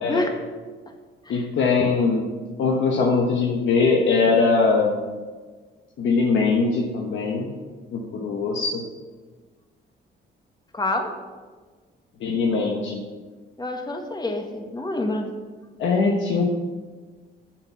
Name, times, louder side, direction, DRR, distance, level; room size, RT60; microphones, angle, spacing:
voice 1, 1.3-2.3 2.6-5.0 6.0-7.5 7.9-8.8 12.2-13.0 15.8-16.5, left 4 dB, 75° left, 0 dB, 1.2 m, -21 dB
voice 2, 10.7-11.2 13.6-15.3, left 2 dB, 20° left, 4 dB, 1.4 m, -27 dB
7.6 x 7.4 x 5.8 m, 1.4 s
cardioid pair, 90°, 20 cm